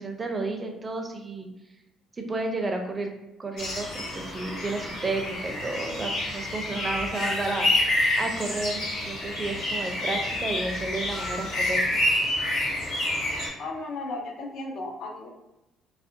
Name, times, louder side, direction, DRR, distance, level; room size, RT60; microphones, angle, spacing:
voice 1, 0.0-1.5 2.3-3.1 3.4-8.8 9.1-12.0, right 2 dB, 25° right, 4 dB, 0.4 m, -32 dB
sound 1, 3.6-13.5, left 1 dB, 85° left, 0.9 m, -28 dB
voice 2, 13.6-15.3, left 2 dB, 65° left, 2 dB, 0.5 m, -35 dB
2.4 x 2.0 x 2.7 m, 0.91 s
cardioid pair, 105°, 0 cm